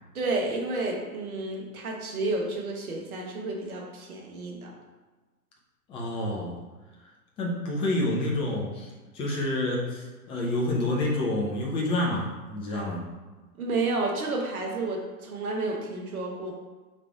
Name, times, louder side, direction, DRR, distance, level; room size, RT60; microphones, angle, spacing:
voice 1, 0.1-4.7 13.6-16.5, right 2 dB, 65° right, 0 dB, 1.1 m, -31 dB
voice 2, 5.9-6.6 7.0-7.1 7.4-13.1, left 1 dB, 10° left, -2 dB, 0.5 m, -28 dB
3.3 x 3.2 x 4.5 m, 1.2 s
figure-of-eight pair, 100°, 46 cm